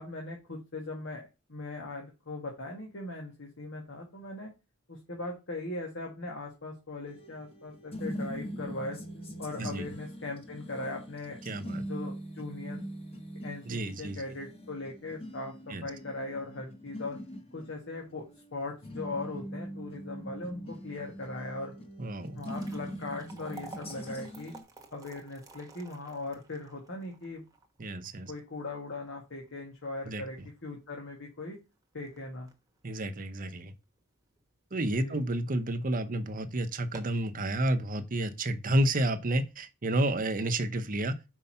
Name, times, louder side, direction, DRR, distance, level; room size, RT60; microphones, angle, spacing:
voice 1, 0.0-4.5 4.9-9.0 9.4-11.4 11.9-12.8 13.4-17.2 17.5-21.7 22.3-24.6 24.9-27.4 28.3-31.6 31.9-32.5 35.0-35.2, left 2 dB, 60° left, 1.8 m, -39 dB
sound 1, 7.1-24.6, equal, 30° left, 1.2 m, -42 dB
voice 2, 11.5-11.9 13.7-14.2 15.7-15.9 22.0-22.4 27.8-28.3 30.1-30.2 32.8-33.7 34.7-41.1, right 1 dB, 40° right, 0.8 m, -30 dB
sound 2, 22.2-34.5 34.9-35.0 35.7-35.9 36.2-36.3 36.7-37.3, right 3 dB, 15° right, 1.1 m, -53 dB
5.4 x 4.6 x 5.6 m
head